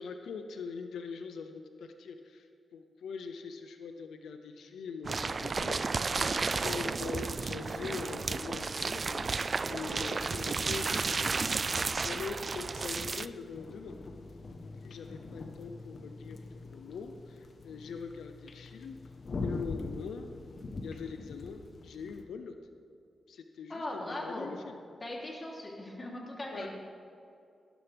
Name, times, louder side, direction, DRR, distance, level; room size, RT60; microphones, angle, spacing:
voice 1, 0.0-14.0 14.8-19.0 19.4-20.3 20.8-22.5 23.3-24.8 26.5-26.7, left 5 dB, 90° left, 7 dB, 0.7 m, -43 dB
sound 1, 5.0-13.3, right 4 dB, 50° right, 0.4 m, -32 dB
sound 2, 9.5-22.2, left 3 dB, 60° left, 1.2 m, -44 dB
voice 2, 23.7-24.5 25.0-26.7, left 1 dB, 35° left, -2 dB, 3.3 m, -39 dB
18.0 x 11.5 x 3.5 m, 2.5 s
cardioid pair, 55°, 0 cm